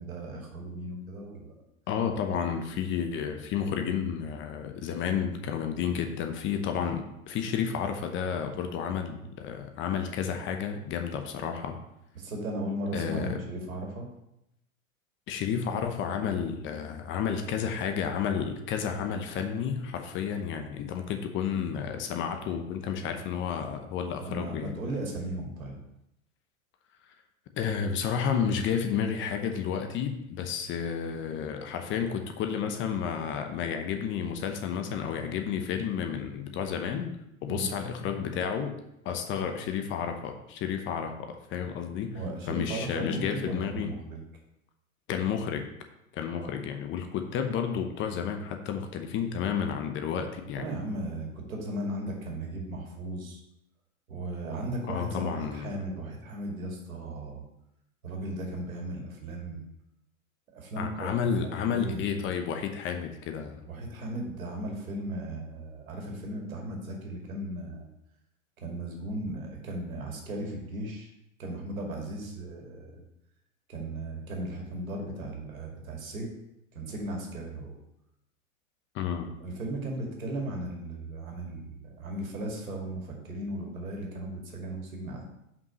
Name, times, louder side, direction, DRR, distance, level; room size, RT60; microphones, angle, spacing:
voice 1, 0.0-1.5 12.1-14.0 24.3-25.8 37.5-37.7 42.1-44.2 46.3-46.5 50.5-53.4 54.1-57.4 58.0-59.6 60.5-61.1 61.4-62.0 63.7-67.9 68.6-71.1 71.4-73.0 73.7-76.3 76.7-77.8 79.4-85.2, right 1 dB, 80° right, 1 dB, 2.2 m, -36 dB
voice 2, 1.9-11.8 12.9-13.4 15.3-24.8 27.5-37.2 37.4-38.7 39.0-42.2 42.5-43.9 45.1-45.7 46.1-50.7 54.9-55.7 60.8-63.6 78.9-79.3, left 7 dB, 30° left, 6 dB, 0.8 m, -31 dB
5.5 x 5.4 x 5.4 m, 0.83 s
hypercardioid pair, 110°, 41 cm